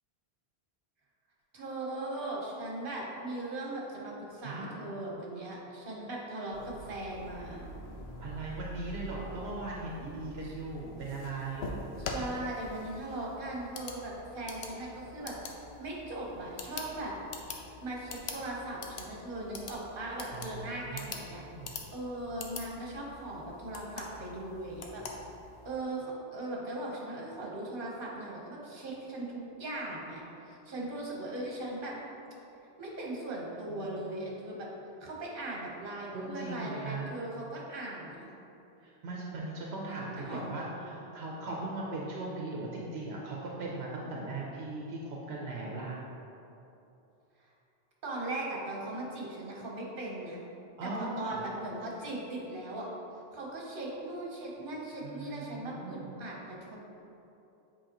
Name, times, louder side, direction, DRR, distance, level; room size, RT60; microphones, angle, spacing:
voice 1, 1.5-7.7 10.4-10.5 12.0-17.2 17.8-25.0 25.6-32.0 32.8-34.7 35.0-38.3 39.8-40.6 48.0-50.4 50.8-52.9 53.3-56.8, right 2 dB, 60° right, -3 dB, 1.3 m, -39 dB
voice 2, 4.4-4.8 8.2-11.8 20.3-21.9 33.7-34.3 36.1-37.1 38.8-46.0 50.8-51.4 55.0-56.1, right 2 dB, 80° right, -3 dB, 1.0 m, -39 dB
sound 1, 6.5-25.7, left 2 dB, 85° left, 0.9 m, -44 dB
7.6 x 4.7 x 3.0 m, 2.9 s
omnidirectional pair, 1.0 m